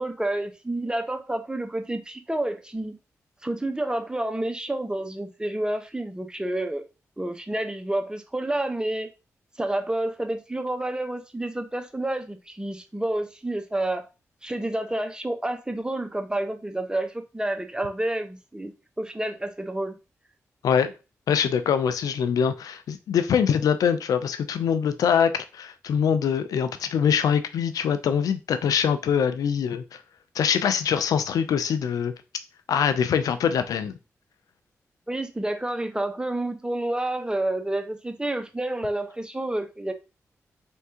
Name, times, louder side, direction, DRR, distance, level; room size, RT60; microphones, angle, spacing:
voice 1, 0.0-2.9 3.4-6.8 7.2-9.1 9.6-14.1 14.4-18.7 19.0-20.0 35.1-39.9, right 1 dB, 15° right, 0.9 m, -29 dB
voice 2, 21.3-30.0 30.4-32.1 32.7-33.9, left 7 dB, 80° left, 0.4 m, -23 dB
4.5 x 3.5 x 2.8 m
supercardioid pair, 40°, 6 cm